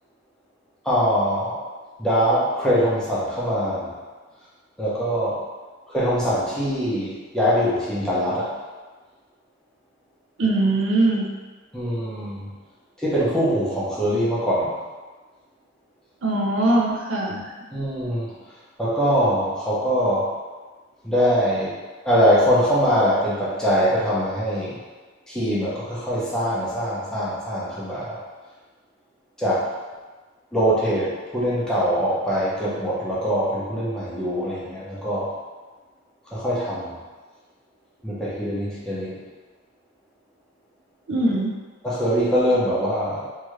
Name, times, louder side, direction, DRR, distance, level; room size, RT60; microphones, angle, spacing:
voice 1, 0.8-1.6 2.0-3.9 4.8-5.4 5.9-8.5 11.7-12.5 13.0-14.8 17.7-18.3 18.8-20.3 21.0-21.8 22.0-24.8 25.3-28.2 29.4-29.7 30.5-35.3 36.3-36.9 38.0-39.2 41.8-43.3, equal, 5° left, -9 dB, 0.7 m, -23 dB
voice 2, 10.4-11.3 16.2-17.5 41.1-41.6, right 2 dB, 80° right, -2 dB, 0.5 m, -21 dB
2.7 x 2.4 x 3.1 m, 1.3 s
head